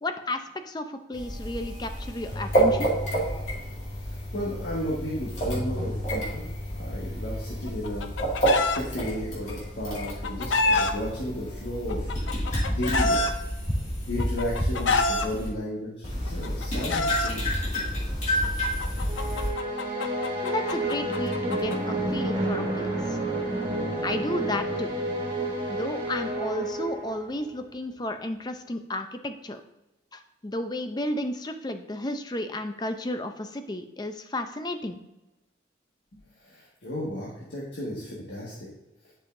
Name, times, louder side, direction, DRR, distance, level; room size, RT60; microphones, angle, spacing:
voice 1, 0.0-2.9 20.4-23.2 24.0-25.0 25.7-29.6 30.1-35.0, left 1 dB, 20° left, 8 dB, 0.5 m, -33 dB
sound 1, 1.1-15.5 16.0-19.5, right 1 dB, 40° left, 2.1 m, -29 dB
voice 2, 4.0-8.1 8.7-13.4 14.0-17.5 36.1-38.7, equal, 65° left, -5 dB, 1.7 m, -34 dB
Chicken rooster, 7.7-8.8 9.9-10.9 11.9-13.3 14.2-15.3 16.3-17.3 18.4-21.8, left 3 dB, 85° left, 0.6 m, -26 dB
sound 2, 19.1-27.5, right 1 dB, 25° right, 2.3 m, -30 dB
10.5 x 5.6 x 2.6 m, 0.96 s
head